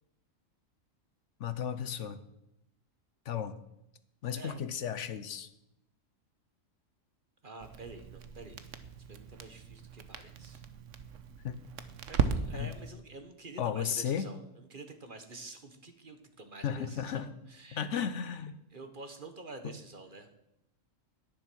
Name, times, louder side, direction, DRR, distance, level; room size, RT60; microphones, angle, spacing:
voice 1, 1.4-2.2 3.3-3.5 4.2-5.5 11.4-11.5 12.5-12.7 13.6-14.3 16.6-17.3 17.7-18.6 19.6-19.7, left 8 dB, 70° left, 13 dB, 1.0 m, -34 dB
voice 2, 7.4-8.7 9.1-10.6 12.1-17.9 18.7-20.3, right 3 dB, 40° right, 7 dB, 1.3 m, -48 dB
Crackle, 7.6-12.9, right 6 dB, 70° right, 1.2 m, -37 dB
10.5 x 10.0 x 6.1 m, 0.85 s
omnidirectional pair, 1.4 m